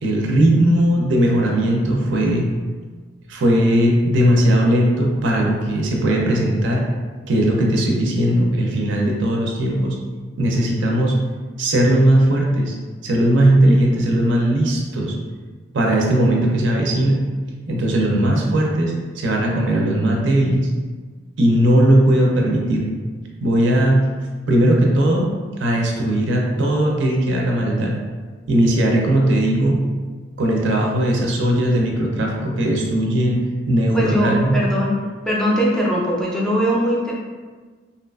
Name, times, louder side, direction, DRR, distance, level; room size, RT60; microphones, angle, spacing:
voice 1, 0.0-2.5 3.3-6.8 7.3-10.0 10.4-11.2 11.6-12.7 13.0-15.2 15.7-17.2 17.7-20.7 21.4-22.9 23.4-24.0 24.5-25.3 25.6-27.9 28.5-29.8 30.4-34.6, right 1 dB, 75° right, -1 dB, 0.5 m, -18 dB
voice 2, 33.9-37.1, equal, 5° left, -5 dB, 0.3 m, -21 dB
2.6 x 2.3 x 2.3 m, 1.4 s
head